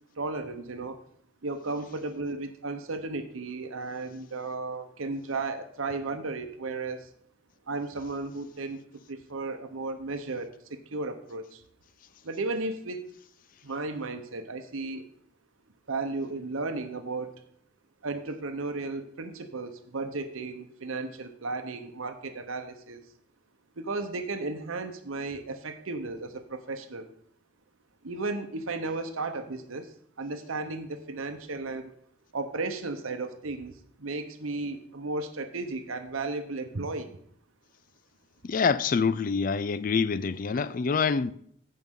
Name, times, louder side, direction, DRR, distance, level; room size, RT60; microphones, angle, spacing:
voice 1, 0.1-1.0 1.4-7.1 7.7-8.8 9.1-11.6 12.2-13.0 13.6-15.1 15.9-17.4 18.0-23.0 23.8-27.1 28.0-31.9 32.3-37.2, right 3 dB, 90° right, 0.9 m, -34 dB
voice 2, 38.4-41.3, left 5 dB, 40° left, 0.3 m, -26 dB
15.0 x 5.5 x 3.7 m
head